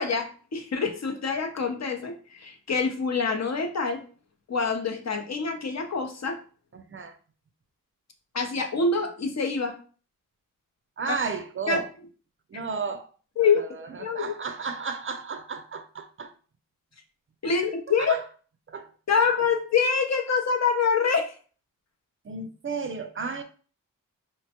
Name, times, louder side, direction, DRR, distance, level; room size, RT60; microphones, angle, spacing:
voice 1, 0.0-4.0 4.5-6.4 8.3-9.7 11.7-11.8 13.4-13.6 14.0-14.3 17.4-18.2 19.1-21.3, left 5 dB, 50° left, 4 dB, 0.7 m, -25 dB
voice 2, 6.7-7.2 11.0-11.9 12.5-13.1 13.4-16.3 17.4-17.6 18.0-18.2 18.7-18.9 22.2-23.4, right 5 dB, 40° right, 8 dB, 0.4 m, -33 dB
3.2 x 2.1 x 2.8 m, 0.40 s
cardioid pair, 60°, 34 cm